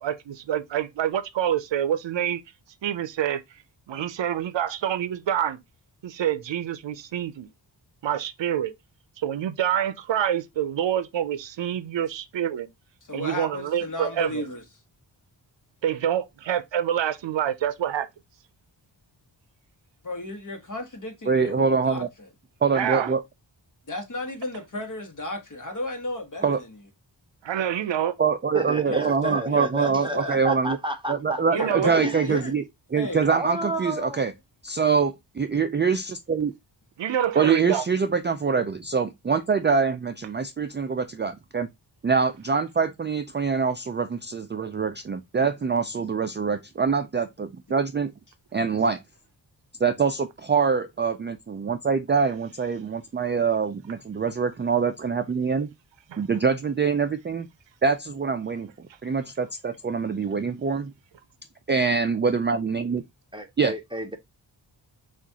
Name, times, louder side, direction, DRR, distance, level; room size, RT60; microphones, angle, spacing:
voice 1, 0.0-2.4 2.8-3.4 3.9-5.6 6.0-7.5 8.0-8.7 9.2-12.7 13.1-14.4 15.8-18.1 22.7-23.1 27.4-28.2 31.5-31.9 37.0-37.8 56.1-56.2, right 10 dB, 75° right, 0.6 m, -27 dB
voice 2, 13.0-14.6 20.0-22.3 23.9-26.8 28.8-30.4 31.5-32.5 32.9-33.3 47.7-47.8, left 2 dB, 45° left, 1.2 m, -34 dB
voice 3, 21.3-22.1 22.6-23.2 26.4-26.6 28.2-30.8 31.1-32.6 32.9-34.3 34.6-36.5 37.4-41.7 42.0-48.1 48.5-49.0 49.8-55.7 56.2-57.5 57.8-60.9 61.7-63.0 63.6-63.7, right 5 dB, 25° right, 0.4 m, -24 dB
voice 4, 28.5-31.4 31.9-32.2 33.3-34.2 63.3-64.2, right 1 dB, 10° right, 0.7 m, -31 dB
6.0 x 2.5 x 2.8 m
wide cardioid pair, 80°, 44 cm